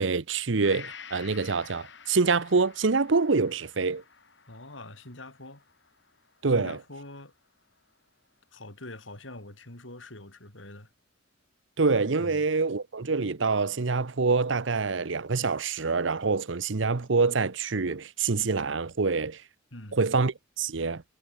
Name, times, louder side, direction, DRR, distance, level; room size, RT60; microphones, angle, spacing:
voice 1, 0.0-4.0 6.4-6.8 11.8-19.4 19.9-21.0, right 4 dB, 75° right, 0.8 m, -26 dB
Gong, 0.6-8.3 8.7-8.8, left 6 dB, 65° left, 6.8 m, -50 dB
voice 2, 4.5-5.6 6.5-7.3 8.5-10.9 12.2-12.4 19.7-20.0, left 2 dB, 80° left, 7.3 m, -44 dB
head